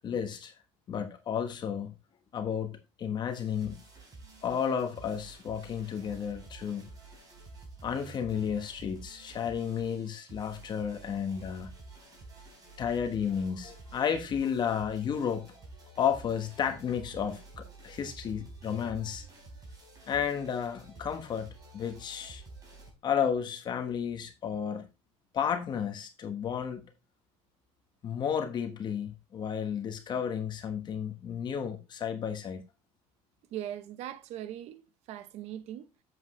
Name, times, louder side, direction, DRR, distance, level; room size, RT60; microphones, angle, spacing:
voice 1, 0.0-0.5 0.9-1.9 2.3-2.7 3.0-3.8 4.4-6.9 7.8-11.7 12.8-15.4 16.0-19.3 20.1-21.5 21.7-22.4 23.0-24.9 25.3-26.8 28.0-32.6, left 8 dB, 40° left, 1.2 m, -32 dB
sound 1, 3.3-22.9, right 3 dB, 30° right, 4.2 m, -50 dB
voice 2, 33.5-36.0, right 11 dB, 65° right, 0.9 m, -40 dB
7.9 x 7.6 x 3.1 m
cardioid pair, 140°, 12 cm